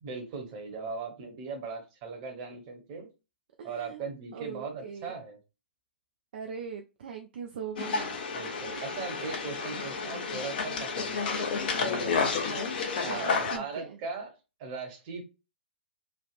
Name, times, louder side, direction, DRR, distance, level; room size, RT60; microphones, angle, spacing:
voice 1, 0.0-3.1 3.6-5.4 8.3-12.5 13.0-14.3 14.6-15.2, right 4 dB, 35° right, 1.0 m, -39 dB
voice 2, 3.6-4.1 4.3-5.1 6.3-8.2 12.5-14.0, right 7 dB, 55° right, 0.4 m, -41 dB
sound 1, 7.8-13.6, left 4 dB, 50° left, 0.8 m, -31 dB
3.3 x 2.3 x 2.5 m
figure-of-eight pair, 115°, 6 cm